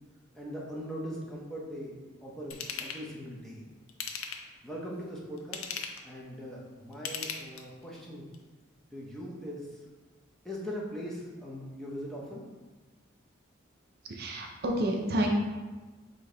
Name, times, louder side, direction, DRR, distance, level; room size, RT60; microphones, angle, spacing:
voice 1, 0.3-3.6 4.6-5.7 6.0-8.2 8.9-9.8 10.4-12.4, equal, ahead, -5 dB, 0.6 m, -40 dB
Ratchet pawl / Tools, 2.5-3.0 3.9-4.6 5.4-6.1 6.9-7.8 8.3-8.4, left 6 dB, 85° left, 0.5 m, -37 dB
voice 2, 14.0-15.4, right 1 dB, 45° right, 0 dB, 0.5 m, -29 dB
5.0 x 2.7 x 3.8 m, 1.3 s
head